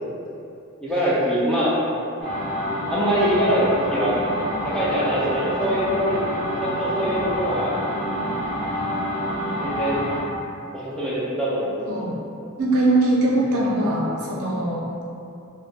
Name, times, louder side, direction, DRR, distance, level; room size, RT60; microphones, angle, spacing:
voice 1, 0.8-1.7 2.9-4.2 4.6-6.2 6.6-7.9 9.6-10.0 10.7-11.7, equal, 5° left, -9 dB, 0.3 m, -23 dB
sound 1, 2.2-10.2, equal, 30° left, 0.7 m, -27 dB
voice 2, 11.9-12.2 12.6-15.0, right 2 dB, 80° right, -4 dB, 0.5 m, -21 dB
2.2 x 2.1 x 2.7 m, 2.6 s
head